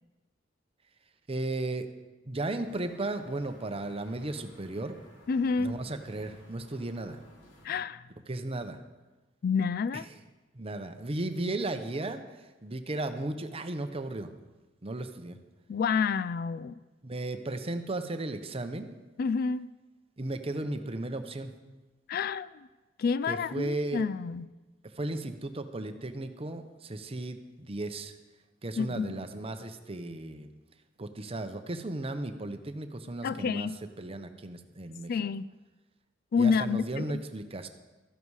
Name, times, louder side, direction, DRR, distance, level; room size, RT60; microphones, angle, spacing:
voice 1, 1.3-1.9 2.2-5.0 5.6-7.2 8.3-8.8 10.5-12.2 12.6-14.3 14.8-15.4 17.0-18.9 20.2-21.5 23.3-24.0 24.9-28.2 28.6-30.5 31.0-33.7 34.0-35.1 36.4-37.7, right 2 dB, 30° right, 8 dB, 0.8 m, -35 dB
sound 1, 2.6-7.7, left 1 dB, 85° left, 2.9 m, -55 dB
voice 2, 5.3-5.7 7.6-8.0 9.4-10.1 15.7-16.7 19.2-19.7 22.1-22.5 23.0-24.5 28.8-29.2 33.2-33.8 35.1-35.5 36.3-37.2, left 5 dB, 50° left, 17 dB, 0.3 m, -29 dB
13.5 x 11.0 x 4.8 m, 1.2 s
head